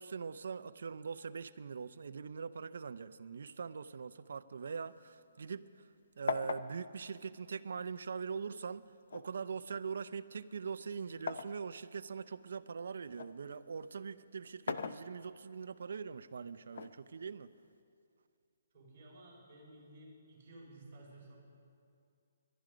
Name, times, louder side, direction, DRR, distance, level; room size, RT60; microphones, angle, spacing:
voice 1, 0.0-5.6 6.2-8.8 9.1-17.5, right 5 dB, 65° right, 13 dB, 0.5 m, -42 dB
sound 1, 4.6-5.9 6.3-8.2 9.1-11.6 12.1-13.4 14.4-15.6 16.7-17.7, left 5 dB, 60° left, 0.6 m, -42 dB
voice 2, 18.7-21.4, right 1 dB, 20° right, -7 dB, 4.6 m, -55 dB
21.5 x 11.0 x 5.1 m, 2.4 s
hypercardioid pair, 180°, 0 cm